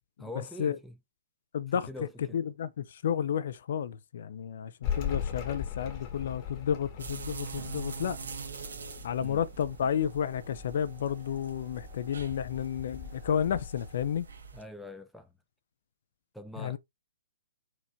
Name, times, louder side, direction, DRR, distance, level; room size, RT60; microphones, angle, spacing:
voice 1, 0.2-1.0 1.9-2.4 9.2-9.4 14.5-15.3 16.3-16.8, left 1 dB, ahead, 0.6 m, -43 dB
voice 2, 1.5-1.9 2.3-8.2 9.0-14.3 16.6-16.8, left 8 dB, 55° left, 0.5 m, -31 dB
sound 1, 4.8-14.2, left 8 dB, 35° left, 1.1 m, -40 dB
sound 2, 7.0-14.6, right 5 dB, 65° right, 1.6 m, -44 dB
sound 3, 7.6-12.7, right 4 dB, 25° right, 1.4 m, -53 dB
4.5 x 2.4 x 4.3 m
figure-of-eight pair, 125°, 0 cm